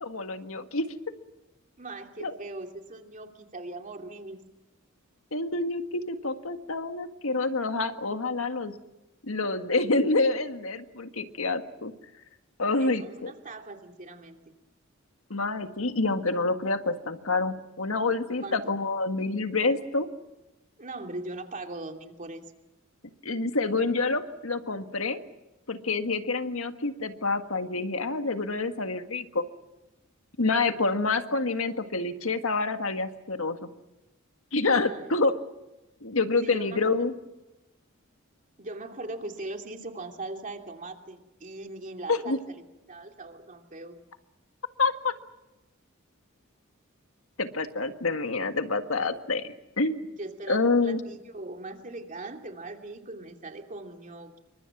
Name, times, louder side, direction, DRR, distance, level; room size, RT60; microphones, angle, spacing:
voice 1, 0.0-0.9 2.2-2.3 5.3-8.7 9.2-11.9 12.6-13.3 15.3-20.1 23.2-25.2 25.7-29.4 30.4-33.7 34.5-35.4 36.0-37.1 42.1-42.4 44.8-45.1 47.4-50.0 50.5-51.0, left 3 dB, 75° left, 7 dB, 1.8 m, -27 dB
voice 2, 1.8-4.4 12.8-14.5 18.4-18.7 20.8-22.4 34.7-35.2 36.4-36.9 38.6-44.0 50.2-54.4, right 2 dB, 40° right, 3 dB, 2.8 m, -40 dB
28.5 x 24.5 x 6.1 m, 0.99 s
head